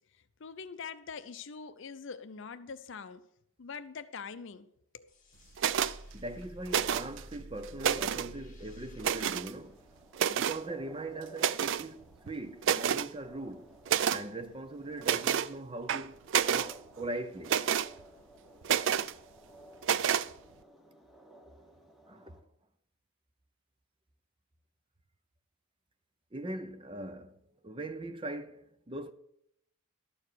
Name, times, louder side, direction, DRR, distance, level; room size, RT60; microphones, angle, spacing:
voice 1, 0.1-3.2 3.6-4.7 4.9-5.1, left 5 dB, 60° left, 0.5 m, -44 dB
sound 1, 5.1-10.4, equal, 40° left, 2.4 m, -51 dB
sound 2, 5.6-5.9 6.7-7.2 7.6-8.3 9.0-9.5 10.1-10.6 11.4-11.9 12.3-12.4 12.6-13.1 13.9-14.2 15.0-15.5 15.9-16.7 17.4-17.9 18.6-19.1 19.8-20.3, right 8 dB, 60° right, 0.3 m, -29 dB
voice 2, 6.1-9.8 10.3-13.8 14.1-17.6 22.1-22.4 26.3-29.1, right 2 dB, 25° right, 0.6 m, -41 dB
sound 3, 9.3-22.4, right 1 dB, ahead, 1.2 m, -57 dB
12.5 x 4.7 x 7.9 m
head